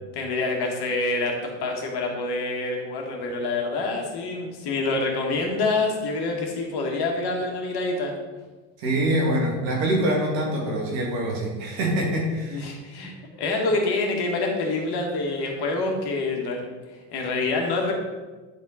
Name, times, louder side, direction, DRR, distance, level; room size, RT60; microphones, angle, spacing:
voice 1, 0.1-8.1 12.5-16.6 17.1-17.9, left 3 dB, 50° left, 1 dB, 2.0 m, -26 dB
voice 2, 8.8-12.7, right 1 dB, 80° right, -1 dB, 2.4 m, -24 dB
9.6 x 4.3 x 4.2 m, 1.3 s
hypercardioid pair, 85°, 50 cm